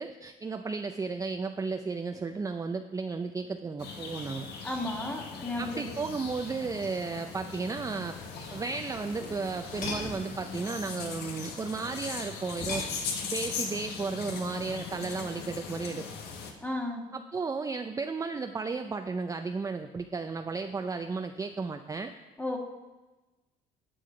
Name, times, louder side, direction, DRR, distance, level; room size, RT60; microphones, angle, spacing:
voice 1, 0.0-4.5 5.6-8.2 8.5-12.8 13.3-16.0 17.1-22.1, right 4 dB, 20° right, 6 dB, 0.5 m, -34 dB
sound 1, 3.8-16.5, left 5 dB, 80° left, 1.6 m, -39 dB
voice 2, 4.6-6.1 16.6-17.0 22.4-22.6, left 1 dB, 10° left, 2 dB, 1.8 m, -34 dB
sound 2, 8.1-10.4 12.5-13.5 15.6-15.9, left 3 dB, 60° left, 4.2 m, -40 dB
11.5 x 7.7 x 5.1 m, 1.1 s
cardioid pair, 110°, 17 cm